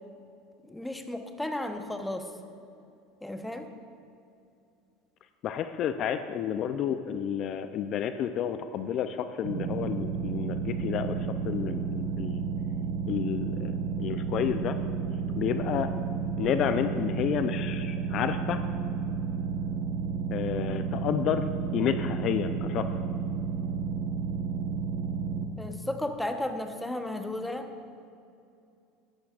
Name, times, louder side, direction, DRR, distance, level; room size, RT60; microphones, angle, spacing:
voice 1, 0.6-2.3 3.2-3.7 25.6-27.7, left 1 dB, 5° left, 6 dB, 0.9 m, -34 dB
voice 2, 5.4-11.1 11.5-12.4 13.1-13.7 14.0-14.8 15.4-15.9 16.4-18.6 20.3-22.9, left 9 dB, 50° left, 9 dB, 0.4 m, -30 dB
sound 1, 9.4-25.4, right 5 dB, 70° right, 1.0 m, -31 dB
14.5 x 11.5 x 2.5 m, 2.6 s
hypercardioid pair, 90°, 0 cm